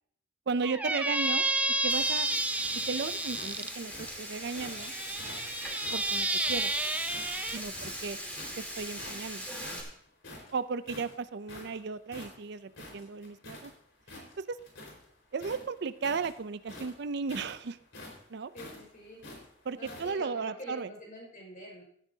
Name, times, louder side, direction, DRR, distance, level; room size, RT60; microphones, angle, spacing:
voice 1, 0.5-1.4 1.8-2.3 2.9-4.9 5.9-6.7 7.5-8.2 8.6-9.5 10.5-13.7 14.4-14.6 15.3-17.8 18.3-18.5 19.6-20.9, right 4 dB, 60° right, 13 dB, 0.5 m, -35 dB
Squeak, 0.6-3.7 4.5-7.6, right 2 dB, 10° right, 0.6 m, -31 dB
sound 1, 1.0-4.8 5.2-7.3 7.7-8.6 9.0-9.3 9.6-13.7 14.0-15.1 15.3-20.1, left 2 dB, 80° left, 4.5 m, -48 dB
Frying (food), 1.9-9.8, equal, 10° left, 3.4 m, -41 dB
voice 2, 7.6-7.9 18.5-19.2 19.7-21.8, left 1 dB, 45° left, -1 dB, 5.6 m, -46 dB
16.5 x 13.5 x 2.8 m, 0.65 s
head